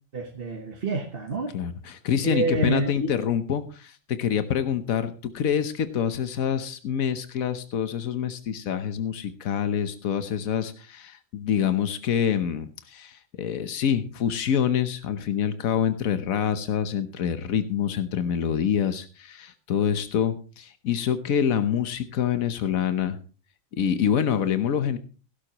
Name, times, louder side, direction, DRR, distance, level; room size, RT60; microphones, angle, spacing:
voice 1, 0.1-1.5 2.2-3.1, right 3 dB, 45° right, 2 dB, 1.4 m, -28 dB
voice 2, 1.5-23.2 23.8-25.0, left 8 dB, 85° left, 11 dB, 1.4 m, -26 dB
16.5 x 11.5 x 3.0 m, 0.35 s
omnidirectional pair, 1.4 m